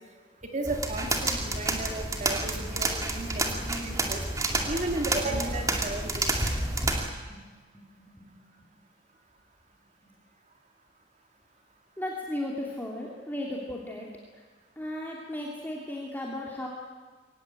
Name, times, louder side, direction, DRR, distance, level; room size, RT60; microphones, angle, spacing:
voice 1, 0.5-4.2 4.7-6.3, right 2 dB, 40° right, 2 dB, 3.0 m, -34 dB
sound 1, 0.6-7.1, right 2 dB, 20° right, 2.3 m, -29 dB
voice 2, 8.1-8.7 12.0-14.4 14.8-16.7, left 1 dB, 10° left, -3 dB, 2.8 m, -36 dB
23.0 x 18.0 x 9.1 m, 1.4 s
head